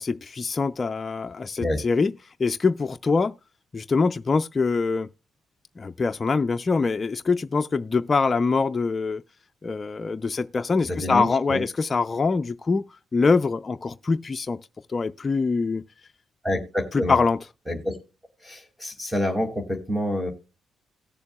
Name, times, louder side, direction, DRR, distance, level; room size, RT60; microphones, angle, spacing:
voice 1, 0.0-3.3 3.7-5.1 5.8-9.2 9.6-14.6 14.9-15.8 16.9-17.4, left 4 dB, 30° left, 0.4 m, -24 dB
voice 2, 10.8-11.6 16.4-17.2 17.7-18.0 18.4-20.3, left 1 dB, 5° right, 2.2 m, -27 dB
18.0 x 6.9 x 2.3 m
cardioid pair, 90°, 0 cm